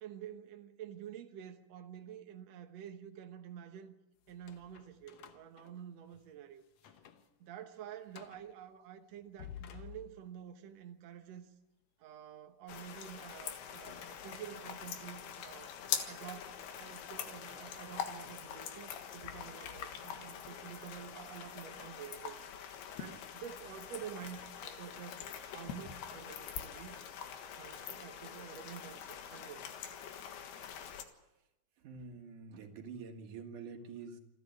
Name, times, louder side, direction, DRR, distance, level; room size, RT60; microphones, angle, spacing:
voice 1, 0.0-3.9 4.3-6.6 7.4-11.5 12.0-15.8 16.0-22.7 23.0-27.0 27.6-29.7, right 9 dB, 75° right, 1.5 m, -49 dB
sound 1, 4.2-6.3 6.7-7.3 7.6-7.7 8.1-8.5 9.1-10.5 13.6-15.4 16.1-16.2 18.0-20.2, left 10 dB, 90° left, 1.5 m, -55 dB
sound 2, 12.7-31.1, left 8 dB, 70° left, 3.4 m, -44 dB
voice 2, 31.8-34.2, right 5 dB, 55° right, 3.0 m, -47 dB
28.5 x 10.5 x 9.6 m
omnidirectional pair, 4.8 m